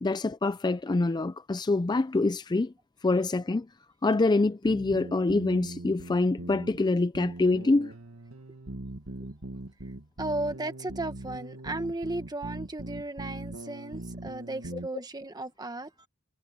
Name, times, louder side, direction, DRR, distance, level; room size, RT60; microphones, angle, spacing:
voice 1, 0.0-2.7 3.0-3.7 4.0-7.9, left 2 dB, 20° left, 0.4 m, -25 dB
sound 1, 4.6-14.9, right 1 dB, 80° right, 1.9 m, -41 dB
voice 2, 10.2-16.1, right 2 dB, 20° right, 1.7 m, -35 dB
head